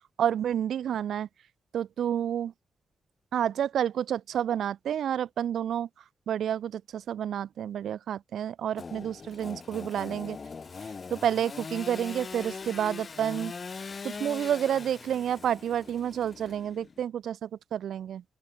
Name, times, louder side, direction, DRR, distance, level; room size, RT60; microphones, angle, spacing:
voice 1, 0.2-1.3 1.7-2.5 3.3-5.9 6.3-10.4 11.1-13.5 14.0-18.2, right 9 dB, 80° right, 1.7 m, -29 dB
Engine / Sawing, 8.8-17.0, left 5 dB, 30° left, 1.5 m, -41 dB
open air
wide cardioid pair, 180°, 0 cm